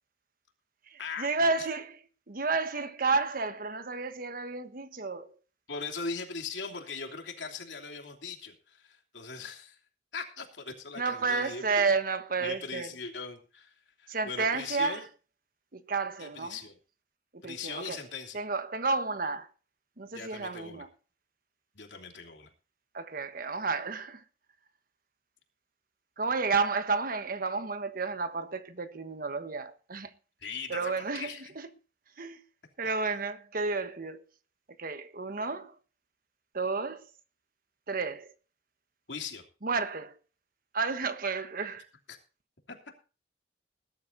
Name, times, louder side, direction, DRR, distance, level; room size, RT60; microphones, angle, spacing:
voice 1, 0.9-2.0 2.3-5.3 11.0-12.9 14.1-15.0 15.7-16.6 17.3-18.0 18.3-19.5 20.0-20.9 22.9-24.2 26.2-30.1 30.7-31.7 32.2-32.4 32.8-34.2 34.8-35.8 36.5-37.0 37.9-38.3 39.6-40.2 40.7-41.9, right 4 dB, 50° right, 1.2 m, -31 dB
voice 2, 5.7-9.8 10.1-11.8 12.4-15.0 16.2-16.8 17.4-18.4 20.1-20.9 21.7-22.5 30.4-31.5 39.1-39.4 42.1-42.2 42.7-42.8, left 4 dB, 80° left, 3.1 m, -40 dB
20.5 x 12.0 x 2.7 m
head